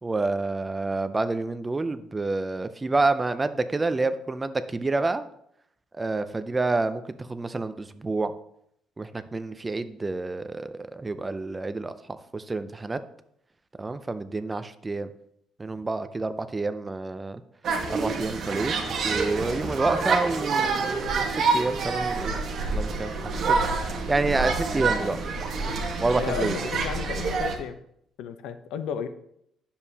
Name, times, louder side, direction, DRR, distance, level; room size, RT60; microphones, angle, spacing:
voice 1, 0.0-5.3 6.0-8.3 9.0-11.9 12.3-13.0 13.8-15.1 15.6-17.4 17.9-22.4 22.7-25.2 26.0-26.5, right 3 dB, 15° right, 12 dB, 0.4 m, -28 dB
sound 1, 17.6-27.6, right 4 dB, 40° right, 1.2 m, -27 dB
voice 2, 26.2-27.8 28.2-29.1, left 8 dB, 80° left, 10 dB, 0.6 m, -33 dB
9.8 x 7.0 x 2.8 m, 0.72 s
cardioid pair, 165°, 0 cm